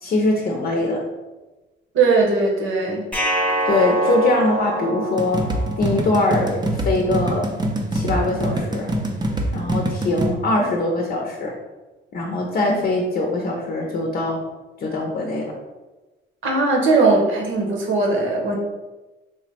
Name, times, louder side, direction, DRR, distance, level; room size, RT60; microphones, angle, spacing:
voice 1, 0.0-1.0 3.7-5.4 5.8-7.5 7.9-8.9 9.5-11.5 12.1-14.4 14.8-15.5, left 2 dB, 50° left, 0 dB, 0.6 m, -22 dB
voice 2, 1.9-3.0 16.4-18.5, right 3 dB, 75° right, -1 dB, 0.9 m, -19 dB
sound 1, 3.1-6.2, right 1 dB, 5° left, 0.8 m, -25 dB
sound 2, 5.2-10.3, right 1 dB, 20° right, 0.5 m, -24 dB
3.3 x 2.1 x 4.2 m, 1.1 s
cardioid pair, 90°, 20 cm